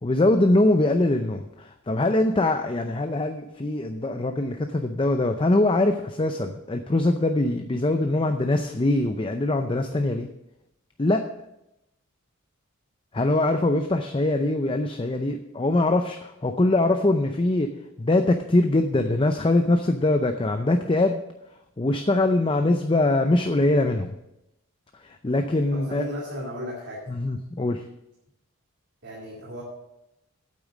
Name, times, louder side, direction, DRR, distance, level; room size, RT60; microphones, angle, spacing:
voice 1, 0.0-10.3 11.0-11.3 13.1-17.7 18.0-21.2 21.8-24.1 25.0-26.1 27.1-27.8, left 2 dB, 25° left, 6 dB, 0.5 m, -23 dB
voice 2, 25.7-27.0 29.0-29.6, equal, 55° right, -4 dB, 2.6 m, -35 dB
8.9 x 8.6 x 6.2 m, 0.87 s
head